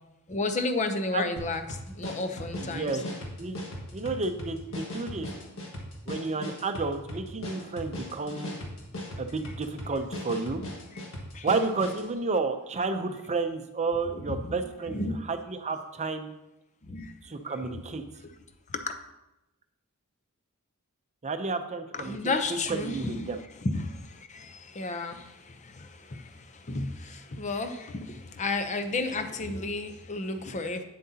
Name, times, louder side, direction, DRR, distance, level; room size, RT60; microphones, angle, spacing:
voice 1, 0.3-3.0 10.9-11.0 11.3-11.5 14.0-14.6 14.9-15.2 16.8-17.1 18.7-19.0 21.9-30.8, left 3 dB, 35° left, 8 dB, 0.6 m, -32 dB
sound 1, 1.4-12.1, left 1 dB, 65° left, 1.6 m, -39 dB
voice 2, 2.6-3.0 3.4-5.3 6.1-8.5 9.2-10.6 11.4-15.0 15.3-16.3 17.2-18.0 21.2-22.2 22.7-23.4, right 3 dB, 30° right, 7 dB, 0.6 m, -31 dB
8.5 x 7.4 x 2.8 m, 0.94 s
head